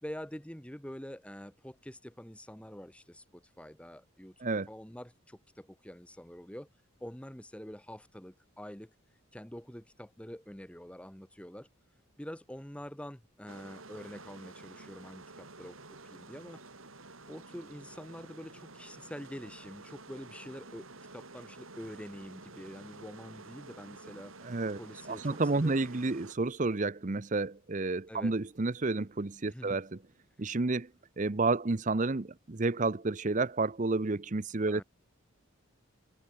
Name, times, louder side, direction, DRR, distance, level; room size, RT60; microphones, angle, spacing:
voice 1, 0.0-6.7 7.0-8.9 9.3-11.7 12.2-15.8 16.0-16.6 17.3-20.9 21.1-24.3 24.8-25.8 28.1-28.3 29.5-29.8 34.7-34.8, equal, 5° left, 1.3 m, -46 dB
sound 1, 13.5-26.3, right 3 dB, 80° right, 5.1 m, -50 dB
voice 2, 24.4-24.8 25.1-29.9 30.4-30.9 31.2-34.8, right 3 dB, 35° right, 0.7 m, -30 dB
head